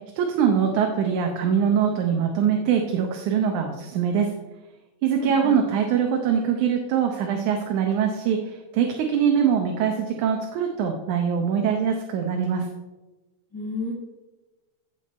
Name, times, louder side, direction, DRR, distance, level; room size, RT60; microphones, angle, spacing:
voice 1, 0.2-4.3 5.0-8.4 8.7-12.7, right 7 dB, 90° right, 2 dB, 2.4 m, -23 dB
voice 2, 5.1-5.7 13.5-13.9, left 4 dB, 10° left, -4 dB, 1.1 m, -31 dB
16.0 x 7.1 x 4.3 m, 1.1 s
omnidirectional pair, 3.3 m